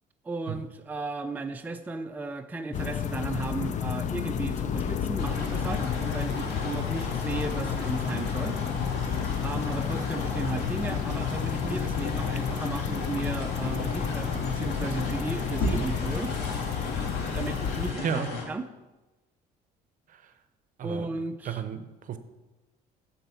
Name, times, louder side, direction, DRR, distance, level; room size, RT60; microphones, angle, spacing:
voice 1, 0.2-8.6 9.4-16.3 17.3-18.7 20.8-21.6, right 3 dB, 10° right, 6 dB, 0.4 m, -35 dB
sound 1, 2.7-17.9, left 8 dB, 45° left, 0.5 m, -31 dB
sound 2, 5.2-18.4, left 2 dB, 75° left, 2.0 m, -35 dB
voice 2, 21.5-22.2, right 7 dB, 50° right, 11 dB, 0.7 m, -32 dB
7.8 x 4.2 x 6.8 m, 1.1 s
cardioid pair, 110°, 17 cm